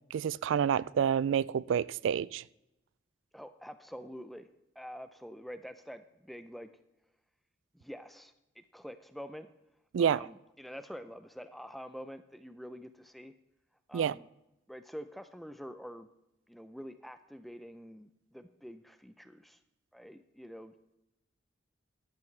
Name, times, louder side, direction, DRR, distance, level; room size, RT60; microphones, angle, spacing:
voice 1, 0.1-2.4 9.9-10.2 13.9-14.2, right 8 dB, 80° right, 0.3 m, -28 dB
voice 2, 3.3-4.5 4.8-6.7 7.7-9.5 10.0-13.3 13.9-14.3 14.7-16.1 16.5-19.6 19.9-20.7, equal, ahead, 0.4 m, -46 dB
13.5 x 10.5 x 3.2 m
head